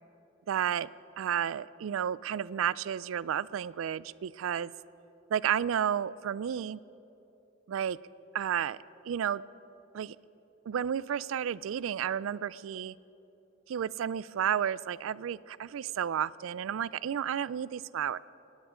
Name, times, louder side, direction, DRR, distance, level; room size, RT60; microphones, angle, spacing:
voice 1, 0.5-0.9 1.2-4.7 5.3-6.8 7.7-8.0 8.3-8.8 9.0-9.4 9.9-10.2 10.7-12.9 13.7-18.2, right 9 dB, 80° right, 19 dB, 0.3 m, -32 dB
25.5 x 10.5 x 5.0 m, 3.0 s
head